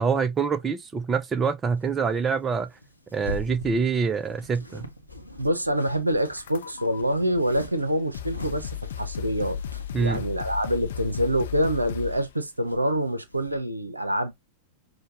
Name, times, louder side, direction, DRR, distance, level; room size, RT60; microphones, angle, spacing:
voice 1, 0.0-2.7 3.1-4.9 9.9-10.2, right 5 dB, 20° right, 0.5 m, -25 dB
sound 1, 1.8-10.2 10.8-10.9 11.1-12.1 12.4-13.6, left 1 dB, 90° left, 0.7 m, -42 dB
voice 2, 5.4-9.6 10.0-14.3, equal, 85° right, 0.6 m, -26 dB
sound 2, 6.4-7.0 7.8-7.9 8.1-12.3, left 11 dB, 60° left, 0.5 m, -35 dB
6.4 x 2.2 x 2.7 m
figure-of-eight pair, 90°, 0 cm